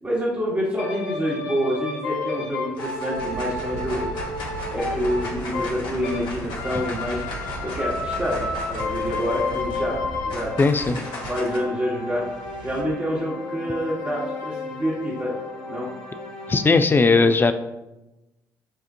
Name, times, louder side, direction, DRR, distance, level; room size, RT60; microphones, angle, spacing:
voice 1, 0.0-4.1 4.7-7.3 7.6-10.0 10.2-10.5 10.9-12.3 12.6-15.3 15.7-15.9, equal, 20° right, -7 dB, 1.2 m, -27 dB
sound 1, 0.8-6.3 6.5-16.8, left 3 dB, 80° left, 0.8 m, -32 dB
sound 2, 2.1-2.4 2.7-11.6, left 2 dB, 65° left, 1.3 m, -37 dB
sound 3, 3.1-12.8, right 2 dB, 60° right, 0.7 m, -38 dB
voice 2, 10.6-11.0 16.5-17.5, left 3 dB, 25° left, 10 dB, 0.4 m, -17 dB
6.7 x 2.4 x 2.6 m, 0.99 s
hypercardioid pair, 50°, 9 cm